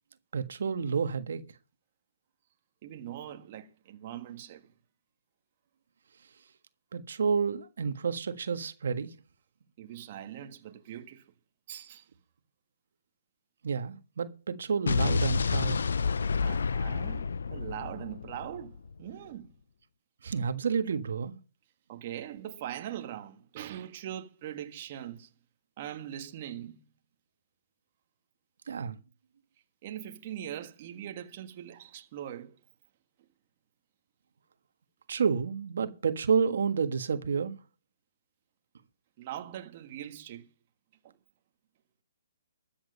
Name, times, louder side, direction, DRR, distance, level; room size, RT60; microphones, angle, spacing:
voice 1, 0.3-1.4 6.9-9.1 13.6-15.8 20.2-21.4 28.7-29.0 35.1-37.6, right 6 dB, 65° right, 1.5 m, -30 dB
voice 2, 2.8-4.7 9.8-11.3 11.7-12.1 16.4-19.5 21.9-25.3 25.8-26.8 29.8-32.6 39.2-40.5 41.0-41.1, right 11 dB, 35° right, 1.5 m, -41 dB
Explosion, 14.9-18.9, left 5 dB, 75° left, 0.6 m, -29 dB
13.5 x 8.9 x 5.4 m
hypercardioid pair, 160°, 0 cm